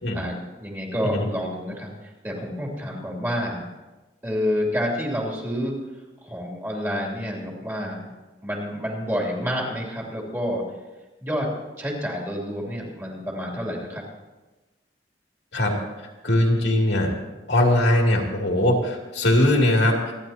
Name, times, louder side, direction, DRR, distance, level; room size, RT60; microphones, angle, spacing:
voice 1, 0.1-1.9 2.2-3.7 4.2-5.7 6.2-8.0 8.4-10.6 11.2-11.5 11.8-14.0, equal, 15° right, -3 dB, 3.0 m, -28 dB
voice 2, 16.2-17.1 17.5-20.1, left 1 dB, 70° left, 0 dB, 2.8 m, -20 dB
27.5 x 11.0 x 2.9 m, 1.1 s
head